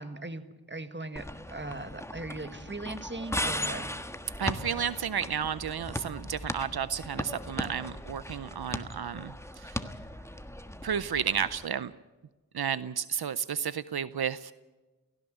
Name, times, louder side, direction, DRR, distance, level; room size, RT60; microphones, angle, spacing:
voice 1, 0.0-3.9, right 2 dB, 30° right, 9 dB, 1.8 m, -39 dB
sound 1, 1.2-11.6, left 1 dB, 5° left, 1.4 m, -38 dB
voice 2, 4.4-9.8 10.8-11.9 12.5-14.5, right 8 dB, 80° right, 16 dB, 0.6 m, -32 dB
17.5 x 16.5 x 9.2 m, 1.2 s
wide cardioid pair, 55°, 37 cm